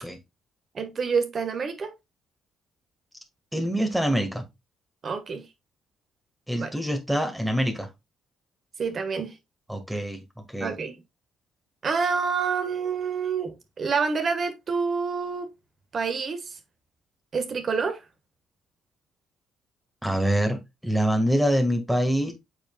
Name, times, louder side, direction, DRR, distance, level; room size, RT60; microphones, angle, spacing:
voice 1, 0.7-1.9 5.0-5.4 6.5-6.7 8.8-9.4 10.6-11.0 11.8-15.5 15.9-16.5 17.3-18.0, right 5 dB, 45° right, 1.7 m, -27 dB
voice 2, 3.5-4.4 6.5-7.9 9.7-10.2 10.5-10.7 20.0-22.3, equal, 5° right, 2.0 m, -25 dB
8.4 x 4.9 x 2.4 m
figure-of-eight pair, 45°, 0 cm